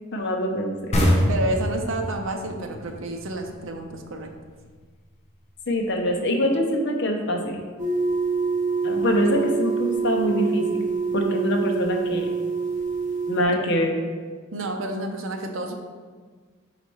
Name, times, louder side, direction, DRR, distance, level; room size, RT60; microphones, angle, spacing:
voice 1, 0.1-1.0 5.7-7.6 8.8-10.6 11.1-12.3 13.3-13.9, equal, 55° left, 2 dB, 0.8 m, -24 dB
sound 1, 0.9-4.3, equal, 30° left, 0.9 m, -24 dB
voice 2, 1.3-4.3 13.5-13.6 14.5-15.7, right 2 dB, 70° right, 3 dB, 0.6 m, -30 dB
sound 2, 7.8-13.4, right 4 dB, 40° right, 1.5 m, -26 dB
4.8 x 4.2 x 4.6 m, 1.5 s
head